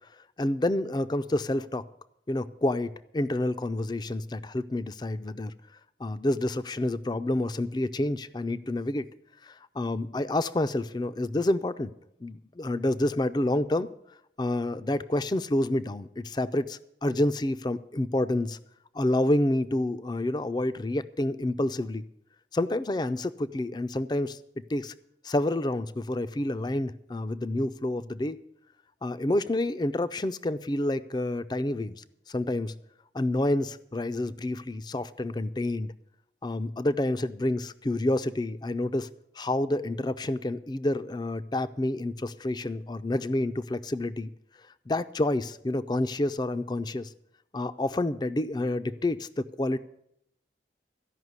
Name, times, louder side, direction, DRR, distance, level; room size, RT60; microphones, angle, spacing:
voice 1, 0.4-1.8 2.3-5.5 6.0-9.1 9.4-11.9 12.2-13.9 14.4-18.6 18.9-22.0 22.5-24.4 24.7-24.9 25.2-28.4 29.0-32.7 33.1-35.9 36.4-39.1 39.4-44.3 44.9-47.1 47.5-49.8, left 1 dB, 25° left, 13 dB, 0.4 m, -28 dB
14.5 x 5.7 x 9.5 m, 0.78 s
head